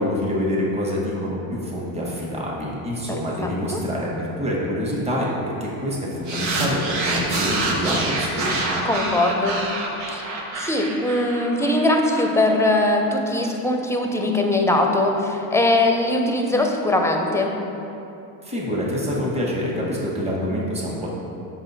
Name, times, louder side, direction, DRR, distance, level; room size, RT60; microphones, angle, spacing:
voice 1, 0.0-8.7 18.4-21.1, equal, 15° right, -5 dB, 1.4 m, -26 dB
voice 2, 3.4-3.8 8.8-9.6 10.1-10.2 10.6-17.5, left 2 dB, 5° left, 2 dB, 0.7 m, -21 dB
sound 1, 6.3-12.8, right 2 dB, 80° right, 1.0 m, -27 dB
5.5 x 5.1 x 4.2 m, 2.9 s
supercardioid pair, 80°, 44 cm